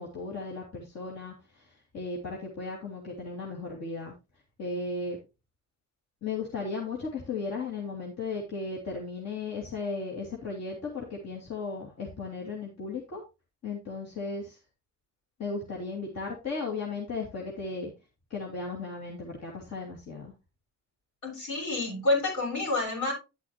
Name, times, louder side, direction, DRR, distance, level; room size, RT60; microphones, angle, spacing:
voice 1, 0.0-4.1 4.6-5.2 6.2-13.2 13.6-14.6 15.4-17.9 18.3-20.3, left 4 dB, 60° left, -2 dB, 2.8 m, -36 dB
voice 2, 21.2-23.1, left 2 dB, 80° left, -2 dB, 6.9 m, -28 dB
10.5 x 8.4 x 3.0 m, 0.27 s
cardioid pair, 90°, 30 cm